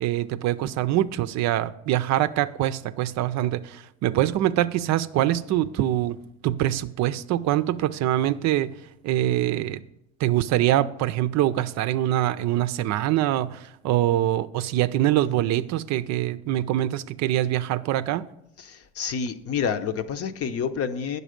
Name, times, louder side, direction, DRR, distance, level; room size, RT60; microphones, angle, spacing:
voice 1, 0.0-6.2 6.4-8.7 9.0-9.8 10.2-18.2, right 13 dB, 55° right, 0.5 m, -24 dB
voice 2, 18.6-21.2, left 7 dB, 45° left, 0.8 m, -28 dB
9.0 x 6.7 x 5.1 m
supercardioid pair, 85°, 33 cm